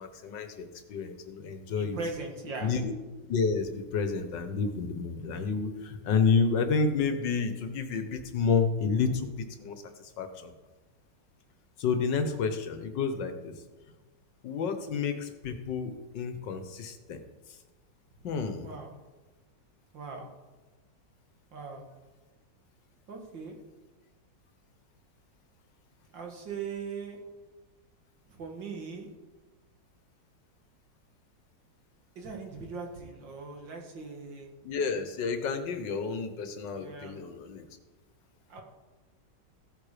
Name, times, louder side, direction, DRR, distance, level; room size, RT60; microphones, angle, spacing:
voice 1, 0.0-2.0 2.6-2.9 3.3-9.8 10.2-10.5 11.8-13.5 14.4-17.2 18.2-18.7 34.6-37.7, left 5 dB, 75° left, 8 dB, 1.8 m, -30 dB
voice 2, 1.7-2.7 18.6-18.9 19.9-20.3 21.5-21.9 23.1-23.6 26.1-27.2 28.3-29.1 32.2-34.5 36.7-37.2 38.5-38.6, right 4 dB, 85° right, 1 dB, 2.7 m, -39 dB
15.5 x 8.9 x 5.0 m, 1.2 s
omnidirectional pair, 2.0 m